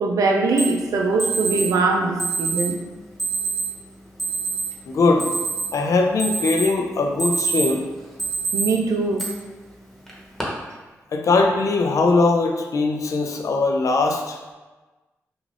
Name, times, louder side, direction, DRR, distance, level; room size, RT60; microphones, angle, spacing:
voice 1, 0.0-2.8 8.5-9.2, right 3 dB, 75° right, 2 dB, 0.4 m, -21 dB
Alarm, 0.6-0.7 1.2-1.7 2.2-2.7 3.2-3.7 4.2-4.7 5.0-5.8 6.2-6.7 7.0-7.8 8.2-8.6 9.2-9.3 10.1-10.4, right 4 dB, 5° left, 0.9 m, -25 dB
voice 2, 4.9-5.3 5.7-7.9 11.1-14.5, left 3 dB, 65° left, 3 dB, 0.4 m, -20 dB
2.4 x 2.4 x 3.2 m, 1.2 s
cardioid pair, 45°, 6 cm